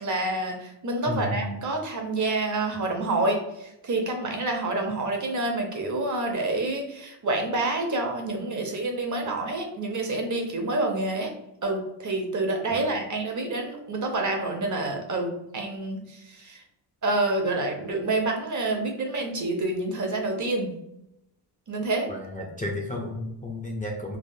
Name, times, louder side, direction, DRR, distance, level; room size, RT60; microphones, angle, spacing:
voice 1, 0.0-11.3 11.6-16.6 17.0-20.7 21.7-22.1, right 2 dB, 40° right, 2 dB, 0.6 m, -28 dB
voice 2, 1.1-1.6 12.7-12.8 22.1-24.2, left 1 dB, 20° left, -2 dB, 0.4 m, -32 dB
3.3 x 2.0 x 2.6 m, 0.86 s
cardioid pair, 100°, 46 cm